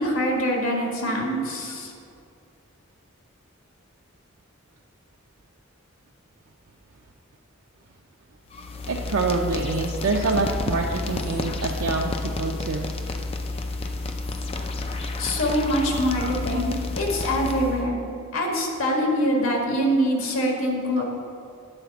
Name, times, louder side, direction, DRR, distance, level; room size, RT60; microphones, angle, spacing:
voice 1, 0.0-1.9 15.2-18.0 18.3-21.0, equal, 85° left, 0 dB, 1.7 m, -24 dB
sound 1, 8.5-17.9, left 2 dB, 30° left, 0.5 m, -30 dB
voice 2, 8.9-12.9 16.5-16.6 18.1-18.2, right 3 dB, 80° right, 0 dB, 0.5 m, -26 dB
9.0 x 4.1 x 7.0 m, 2.4 s
head